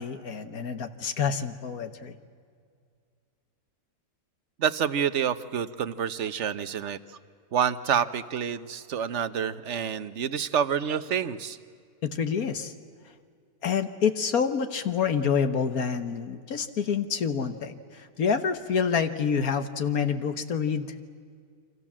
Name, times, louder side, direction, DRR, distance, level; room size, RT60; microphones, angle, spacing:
voice 1, 0.0-2.1 12.0-12.7 13.6-20.9, left 6 dB, 65° left, 9 dB, 1.6 m, -27 dB
voice 2, 4.6-7.0 7.5-11.6, right 8 dB, 50° right, 13 dB, 1.2 m, -28 dB
29.0 x 25.0 x 7.4 m, 2.1 s
omnidirectional pair, 1.7 m